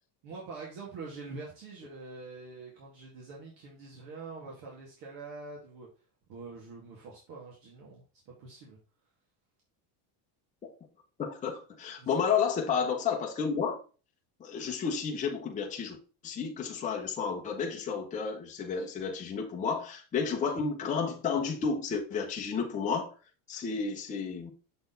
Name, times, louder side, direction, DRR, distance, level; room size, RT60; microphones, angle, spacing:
voice 1, 0.2-5.9 6.3-8.8 12.0-12.1, right 3 dB, 65° right, 2.1 m, -45 dB
voice 2, 11.2-13.8 14.4-16.0 16.2-23.1 23.5-24.5, left 6 dB, 15° left, 0.7 m, -31 dB
6.8 x 4.3 x 3.8 m
cardioid pair, 170°, 46 cm